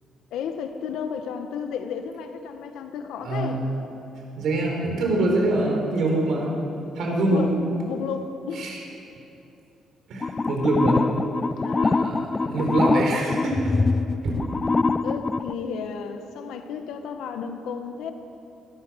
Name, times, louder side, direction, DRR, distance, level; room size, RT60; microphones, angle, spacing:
voice 1, 0.3-3.6 7.3-7.5 7.9-8.8 11.6-12.2 15.0-18.1, left 7 dB, 85° left, 7 dB, 1.6 m, -33 dB
voice 2, 3.2-3.6 4.4-6.5 6.9-7.4 8.5-8.8 10.1-11.0 11.8-13.7 14.2-14.3, right 2 dB, 60° right, 0 dB, 4.6 m, -24 dB
sound 1, 10.2-15.5, left 3 dB, 20° left, 0.4 m, -24 dB
22.5 x 18.0 x 6.6 m, 2.9 s
cardioid pair, 175°, 0 cm